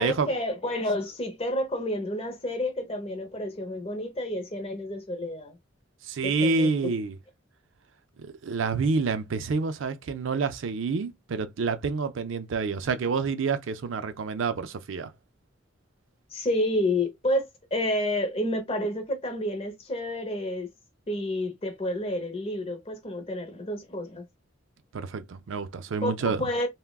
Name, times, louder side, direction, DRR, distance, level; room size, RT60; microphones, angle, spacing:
voice 1, 0.0-5.6 6.2-6.7 16.3-20.7 21.1-24.2 26.0-26.1 26.4-26.7, left 1 dB, 30° left, 0.8 m, -29 dB
voice 2, 6.0-7.2 8.2-15.1 24.9-26.5, right 4 dB, 80° right, 0.4 m, -28 dB
3.4 x 2.1 x 2.2 m
head